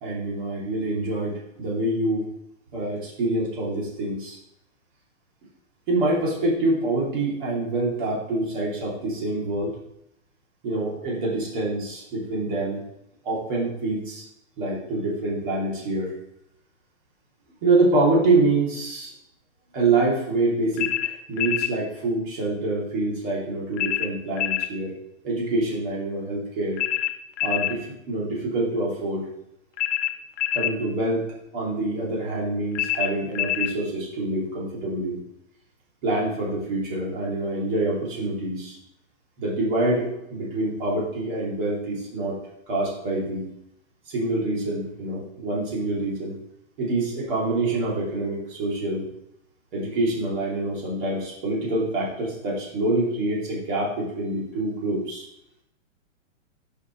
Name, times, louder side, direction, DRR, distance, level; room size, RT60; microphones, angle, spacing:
voice 1, 0.0-2.3 2.7-4.4 5.9-9.8 10.6-12.8 13.2-14.2 14.6-16.1 17.6-19.1 19.7-24.9 25.2-26.8 27.4-29.3 30.5-31.3 31.5-35.2 36.0-38.8 39.4-42.4 42.7-43.5 44.1-46.4 46.8-49.1 49.7-55.3, right 2 dB, 40° right, -5 dB, 2.7 m, -26 dB
sound 1, 20.8-21.8 23.8-24.7 26.8-27.8 29.8-30.8 32.7-33.8, left 13 dB, 65° left, 0.9 m, -26 dB
10.5 x 5.6 x 3.1 m, 0.81 s
hypercardioid pair, 170°, 38 cm